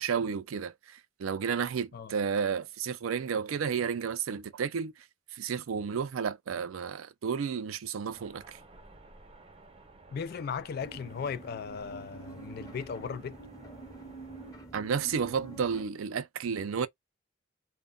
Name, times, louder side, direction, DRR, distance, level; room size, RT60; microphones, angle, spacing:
voice 1, 0.0-4.9 5.3-8.6 14.7-16.9, right 6 dB, 90° right, 0.4 m, -32 dB
sound 1, 8.1-14.6, right 2 dB, 30° right, 0.6 m, -55 dB
voice 2, 10.1-13.4, left 6 dB, 50° left, 0.3 m, -37 dB
sound 2, 10.8-15.8, right 2 dB, 15° left, 0.7 m, -47 dB
2.2 x 2.1 x 3.6 m
head